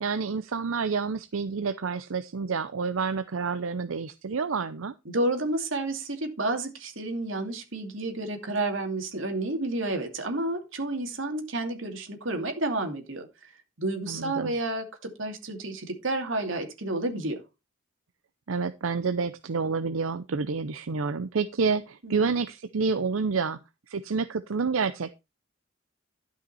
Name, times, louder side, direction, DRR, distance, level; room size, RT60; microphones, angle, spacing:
voice 1, 0.0-4.9 14.1-14.6 18.5-23.6 23.9-25.1, right 5 dB, 85° right, 0.6 m, -29 dB
voice 2, 5.1-13.3 13.8-17.4 22.0-22.3, right 2 dB, 70° right, 2.5 m, -30 dB
12.5 x 5.7 x 4.2 m
head